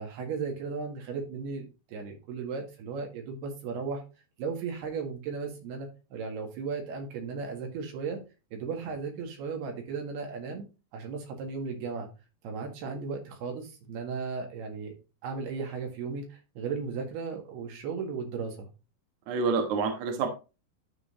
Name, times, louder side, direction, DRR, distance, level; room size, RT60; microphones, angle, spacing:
voice 1, 0.0-4.0 4.4-8.2 8.5-10.7 10.9-12.1 12.4-14.9 15.2-18.7, right 5 dB, 80° right, 2 dB, 3.8 m, -36 dB
voice 2, 19.3-20.3, right 4 dB, 60° right, 3 dB, 2.3 m, -28 dB
12.0 x 4.0 x 3.8 m, 0.31 s
omnidirectional pair, 4.6 m